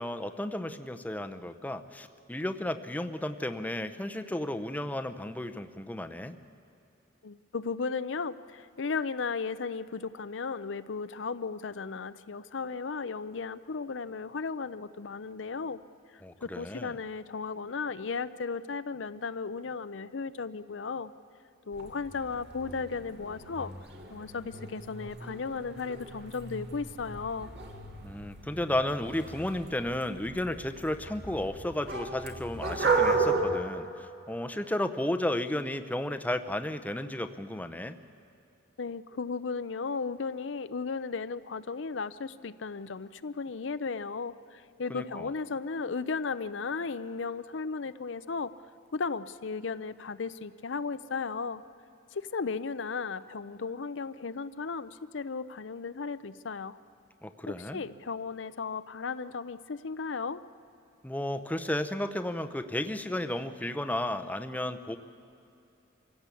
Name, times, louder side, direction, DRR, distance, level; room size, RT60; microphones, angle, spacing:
voice 1, 0.0-6.4 16.2-16.9 28.0-38.0 44.9-45.3 57.2-57.8 61.0-65.0, left 1 dB, 10° left, 7 dB, 0.7 m, -33 dB
voice 2, 7.2-15.8 16.1-21.1 21.7-23.7 24.1-27.5 38.8-48.5 48.9-51.6 52.1-56.8 57.5-60.4, left 4 dB, 75° left, 13 dB, 0.6 m, -35 dB
sound 1, 21.7-33.4, right 4 dB, 60° right, 2.5 m, -34 dB
25.5 x 16.5 x 8.4 m, 2.6 s
head